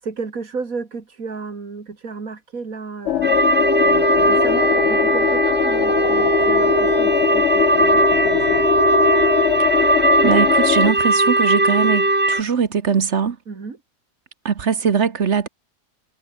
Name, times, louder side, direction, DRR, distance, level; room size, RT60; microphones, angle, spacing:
voice 1, 0.0-8.7 13.5-13.8, right 4 dB, 85° right, 3.0 m, -33 dB
sound 1, 3.1-10.9, left 12 dB, 65° left, 0.8 m, -21 dB
sound 2, 3.2-12.4, right 2 dB, 10° right, 0.5 m, -18 dB
voice 2, 10.2-13.4 14.4-15.5, right 6 dB, 55° right, 1.5 m, -20 dB
omnidirectional pair, 1.4 m